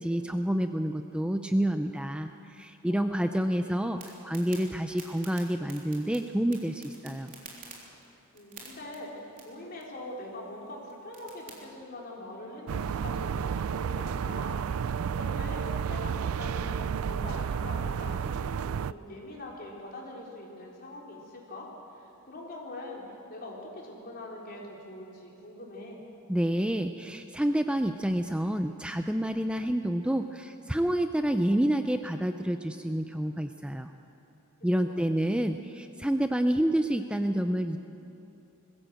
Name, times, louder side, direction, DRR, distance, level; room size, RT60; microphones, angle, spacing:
voice 1, 0.0-7.3 26.3-33.9 34.6-37.8, right 1 dB, 5° right, 7 dB, 0.5 m, -28 dB
voice 2, 2.8-3.6 8.3-21.7 21.9-23.0 23.3-26.0 34.6-35.0, left 1 dB, 45° left, -3 dB, 4.1 m, -43 dB
sound 1, 4.0-11.6, right 4 dB, 40° right, 3.6 m, -51 dB
sound 2, 12.7-18.9, right 7 dB, 75° right, 0.4 m, -31 dB
21.0 x 16.0 x 7.8 m, 2.9 s
head